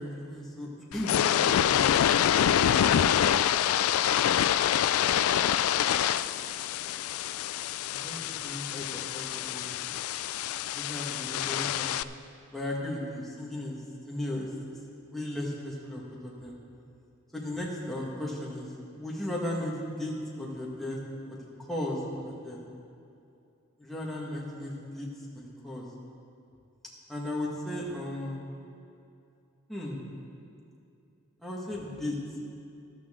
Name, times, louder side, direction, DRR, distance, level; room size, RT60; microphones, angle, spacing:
voice 1, 0.0-1.9 7.9-10.0 10.7-12.0 12.5-14.5 15.0-16.6 17.3-21.0 21.3-21.4 21.7-22.6 23.8-25.1 25.3-25.9 27.1-28.4 29.7-30.0 31.4-32.2, left 1 dB, ahead, -5 dB, 1.6 m, -36 dB
sound 1, 0.9-12.0, left 10 dB, 80° left, 0.3 m, -26 dB
voice 2, 1.3-7.2, left 1 dB, 25° left, -4 dB, 1.2 m, -48 dB
13.0 x 12.5 x 3.7 m, 2.5 s
head